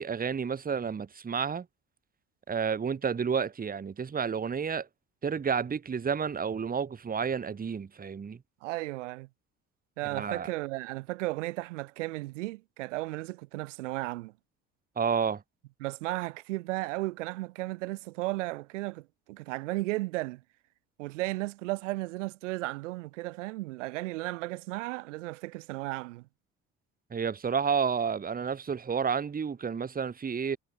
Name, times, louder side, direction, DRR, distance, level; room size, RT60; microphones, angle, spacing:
voice 1, 0.0-1.7 2.5-4.9 5.2-8.4 10.1-10.5 15.0-15.4 27.1-30.6, right 6 dB, 25° right, 1.0 m, -30 dB
voice 2, 8.6-9.3 10.0-14.3 15.8-20.4 21.0-26.2, right 20 dB, 85° right, 3.1 m, -34 dB
hypercardioid pair, 60°, 36 cm